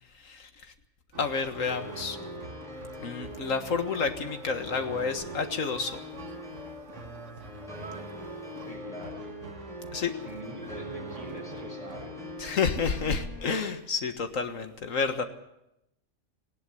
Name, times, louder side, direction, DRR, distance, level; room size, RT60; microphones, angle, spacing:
sound 1, 1.1-12.4, right 4 dB, 60° right, 1.7 m, -48 dB
voice 1, 1.2-2.2 3.0-6.0 9.9-10.1 12.4-15.2, left 5 dB, 65° left, 7 dB, 1.9 m, -30 dB
sound 2, 1.7-13.7, left 1 dB, ahead, 5.3 m, -42 dB
voice 2, 8.6-9.3 10.2-12.2, right 1 dB, 25° right, 2 dB, 4.8 m, -43 dB
18.5 x 17.5 x 7.9 m, 0.85 s
omnidirectional pair, 1.4 m